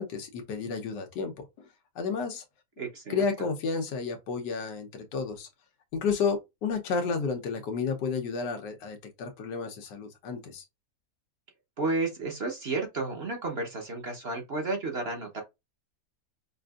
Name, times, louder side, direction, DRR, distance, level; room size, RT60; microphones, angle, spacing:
voice 1, 0.0-1.7 2.0-2.4 3.1-5.5 5.9-10.6, left 5 dB, 90° left, 1.5 m, -31 dB
voice 2, 2.8-3.2 11.8-15.4, right 3 dB, 45° right, 0.9 m, -32 dB
5.4 x 2.5 x 2.4 m
omnidirectional pair, 1.8 m